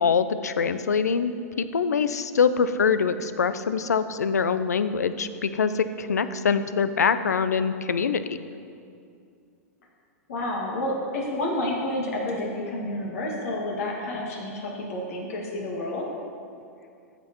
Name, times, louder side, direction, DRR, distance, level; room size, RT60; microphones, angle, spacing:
voice 1, 0.0-8.4, left 6 dB, 90° left, 12 dB, 0.4 m, -24 dB
voice 2, 10.3-16.1, left 1 dB, 70° left, -2 dB, 1.9 m, -30 dB
14.5 x 6.7 x 3.0 m, 2.4 s
hypercardioid pair, 110°, 9 cm